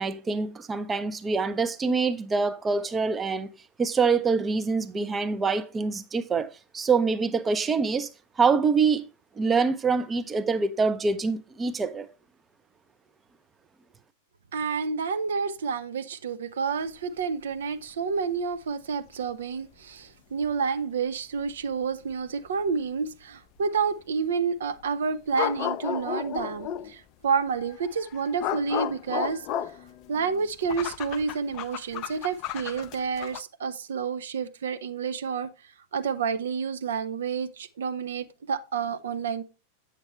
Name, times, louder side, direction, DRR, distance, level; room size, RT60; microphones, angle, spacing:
voice 1, 0.0-3.5 3.8-8.1 8.4-9.1 9.4-12.1, right 4 dB, 20° right, 0.6 m, -25 dB
voice 2, 14.5-29.5 30.1-35.5 35.9-39.4, right 5 dB, 65° right, 0.7 m, -29 dB
sound 1, 20.4-20.5 21.5-21.6 25.3-26.9 27.6-33.4, left 11 dB, 40° left, 0.5 m, -33 dB
8.8 x 6.7 x 3.1 m
figure-of-eight pair, 90°, 0 cm